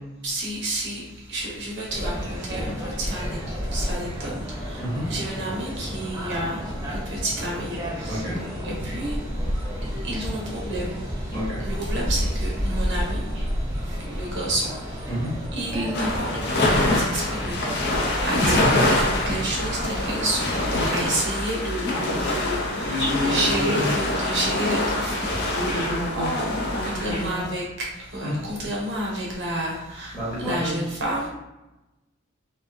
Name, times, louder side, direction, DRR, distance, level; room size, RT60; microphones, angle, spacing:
voice 1, 0.2-6.6 6.9-8.3 8.6-9.2 10.0-11.0 11.6-13.5 13.8-15.1 15.5-25.6 26.1-31.3, right 1 dB, 55° right, -3 dB, 0.6 m, -30 dB
sound 1, 1.9-21.1, equal, 15° right, 0.4 m, -31 dB
voice 2, 8.1-8.7 11.3-11.6 15.1-15.3 18.3-18.6 20.7-21.1 22.8-23.9 25.3-26.3 26.7-27.5 28.2-28.5 30.1-30.8, equal, 20° left, -9 dB, 1.0 m, -29 dB
sound 2, 15.9-27.3, left 1 dB, 50° left, 0.4 m, -25 dB
2.5 x 2.2 x 2.4 m, 0.98 s
head